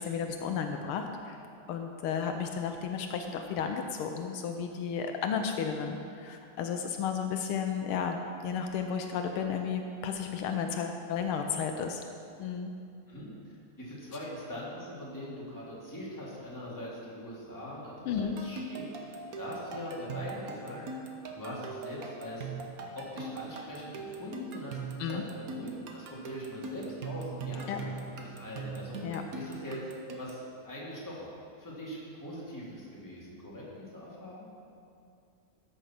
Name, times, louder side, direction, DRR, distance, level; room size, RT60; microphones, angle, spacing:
voice 1, 0.0-1.4 1.7-12.0 12.4-12.7 18.1-18.4 25.0-25.2 27.7-27.8 29.0-29.2, left 6 dB, 80° left, 5 dB, 1.6 m, -33 dB
voice 2, 13.1-20.8 21.3-22.5 22.9-29.0 29.3-29.8 30.1-31.3 31.6-34.5, left 1 dB, 10° left, -7 dB, 2.4 m, -42 dB
sound 1, 18.2-30.5, right 4 dB, 50° right, 1.2 m, -41 dB
13.0 x 6.7 x 5.9 m, 2.5 s
omnidirectional pair, 2.4 m